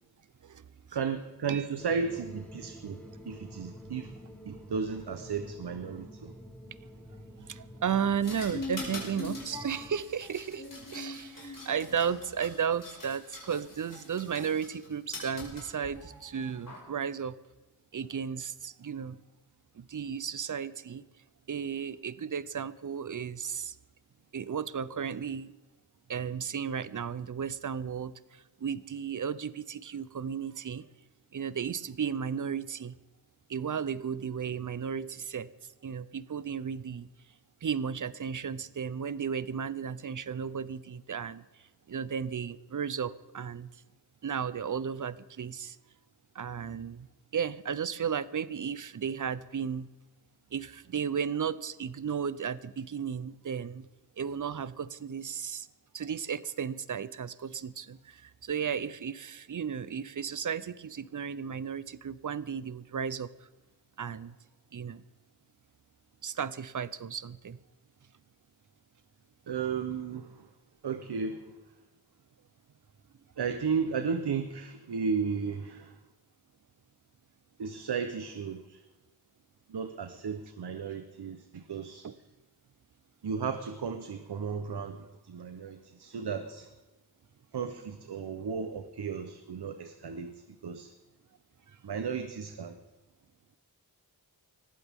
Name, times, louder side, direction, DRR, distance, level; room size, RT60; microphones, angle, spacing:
voice 1, 0.9-3.0 3.3-4.2 4.5-6.3 69.5-70.5 70.8-71.5 73.4-76.0 77.6-78.8 79.7-82.0 83.2-86.7 87.5-90.3 90.6-90.9 91.8-92.8, right 6 dB, 85° right, 8 dB, 1.0 m, -34 dB
sound 1, 1.8-9.9, equal, 5° left, 2.3 m, -49 dB
voice 2, 7.4-17.4 17.9-19.2 19.7-21.0 21.5-23.8 24.3-25.5 26.1-30.9 31.3-33.0 33.5-35.5 35.8-37.1 37.6-41.4 41.9-43.8 44.2-45.8 46.3-47.1 47.3-49.9 50.5-53.9 54.2-55.7 55.9-63.3 64.0-64.4 64.7-65.0 66.2-67.6 82.0-82.1 91.7-91.8, right 7 dB, 50° right, 17 dB, 0.7 m, -34 dB
sound 2, 8.2-14.9 15.1-16.8, left 2 dB, 55° left, 5.6 m, -42 dB
20.0 x 15.0 x 3.6 m, 1.1 s
wide cardioid pair, 105°, 39 cm